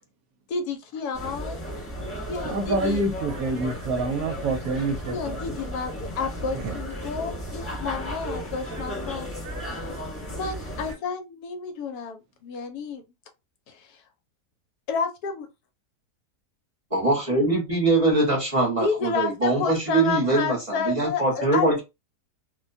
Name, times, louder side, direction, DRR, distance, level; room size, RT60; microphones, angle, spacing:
voice 1, 0.5-1.6 2.3-3.0 5.1-9.3 10.3-13.0 13.7-13.9 14.9-15.5 18.8-21.8, left 5 dB, 80° left, 1.1 m, -30 dB
sound 1, 1.1-10.9, equal, 20° left, 0.3 m, -34 dB
voice 2, 2.4-5.6 6.5-6.8 8.8-8.9 9.4-10.1 10.9-11.0, right 2 dB, 70° right, 1.0 m, -28 dB
voice 3, 16.9-21.8, right 2 dB, 25° right, 0.8 m, -22 dB
2.6 x 2.2 x 2.5 m
omnidirectional pair, 1.7 m